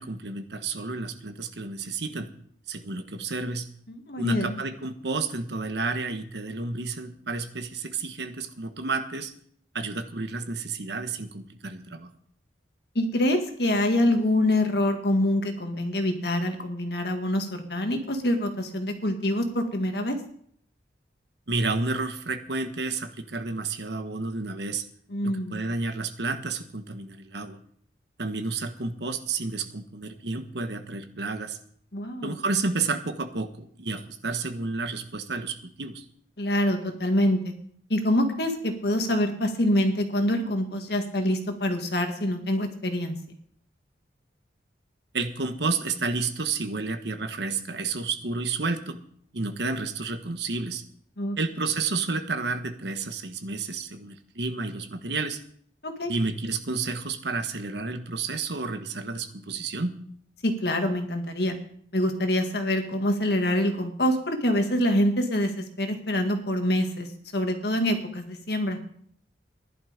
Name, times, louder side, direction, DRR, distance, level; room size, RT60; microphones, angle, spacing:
voice 1, 0.0-2.3 2.7-3.7 4.2-9.3 9.7-12.1 21.5-24.8 25.2-27.6 28.2-31.6 32.2-36.0 45.1-49.0 49.3-50.8 51.4-55.4 56.1-60.0, right 3 dB, 65° right, 8 dB, 1.3 m, -31 dB
voice 2, 3.9-4.6 13.0-20.2 25.1-25.6 31.9-32.4 36.4-37.5 37.9-43.2 51.2-51.4 55.8-56.1 60.4-61.6 61.9-67.1 67.3-68.8, left 1 dB, 60° left, 5 dB, 1.9 m, -25 dB
14.5 x 11.5 x 5.1 m, 0.63 s
head